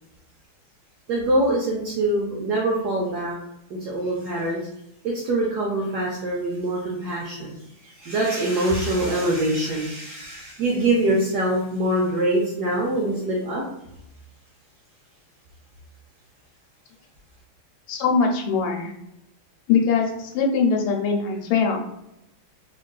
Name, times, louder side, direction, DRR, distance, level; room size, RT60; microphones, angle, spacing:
voice 1, 1.1-3.4 3.7-4.6 5.0-7.6 7.8-13.6, right 1 dB, 75° right, -3 dB, 0.9 m, -24 dB
voice 2, 17.9-18.9 19.7-21.8, left 5 dB, 90° left, 2 dB, 1.6 m, -22 dB
3.6 x 2.4 x 2.2 m, 0.83 s
omnidirectional pair, 2.4 m